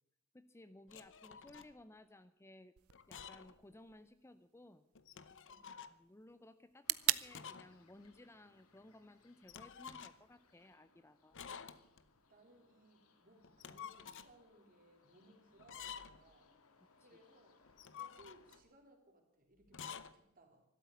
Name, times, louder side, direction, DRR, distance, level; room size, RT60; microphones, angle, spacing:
voice 1, 0.3-2.7 3.1-4.8 5.9-11.4 17.0-17.1, left 1 dB, 10° left, 12 dB, 0.5 m, -59 dB
sound 1, 0.9-1.7 2.9-3.6 3.9-4.0 5.0-6.0 7.3-7.8 8.0-8.1 9.5-10.3 11.3-12.1 13.4-14.3 15.6-16.3 17.7-18.7 19.7-20.1, left 7 dB, 60° left, 0.8 m, -50 dB
sound 2, 2.8-10.8, right 16 dB, 80° right, 0.6 m, -44 dB
voice 2, 5.4-5.8 12.3-16.5 17.0-17.6 17.9-20.6, right 1 dB, 40° right, 3 dB, 3.3 m, -65 dB
sound 3, 6.8-18.6, left 4 dB, 85° left, 1.8 m, -70 dB
13.0 x 12.0 x 8.4 m, 0.86 s
head